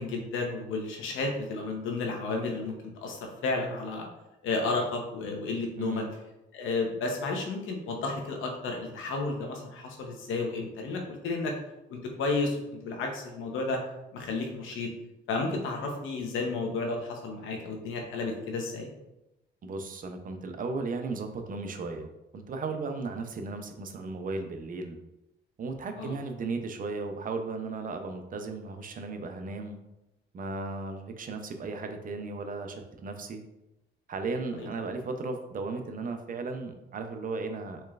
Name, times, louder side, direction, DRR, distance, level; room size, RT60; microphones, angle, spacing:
voice 1, 0.0-2.7 3.0-4.1 4.4-6.0 6.5-11.5 11.9-12.6 12.8-13.8 14.1-14.9 15.3-18.9 26.0-26.1 34.5-34.7, left 3 dB, 85° left, 2 dB, 0.8 m, -32 dB
voice 2, 19.6-25.0 25.6-29.8 30.3-33.4 34.1-37.8, right 3 dB, 45° right, 6 dB, 0.6 m, -35 dB
4.3 x 3.1 x 2.4 m, 0.93 s
cardioid pair, 90°, 20 cm